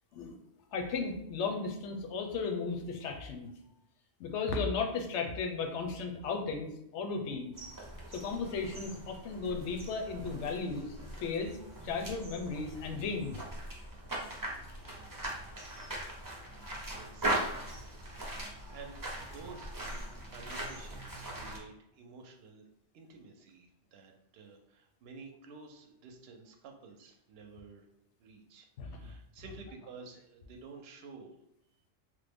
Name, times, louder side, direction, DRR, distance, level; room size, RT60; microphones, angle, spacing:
voice 1, 0.7-3.5 4.2-7.5 8.1-11.6 11.8-13.4 28.8-28.9, left 4 dB, 85° left, 3 dB, 0.9 m, -35 dB
sound 1, 7.5-21.6, right 1 dB, 25° right, 0.5 m, -40 dB
voice 2, 16.9-17.7 18.1-20.0 20.3-22.7 22.9-27.8 28.2-31.4, right 4 dB, 70° right, 3 dB, 0.8 m, -52 dB
3.1 x 2.1 x 3.4 m, 0.79 s
omnidirectional pair, 1.2 m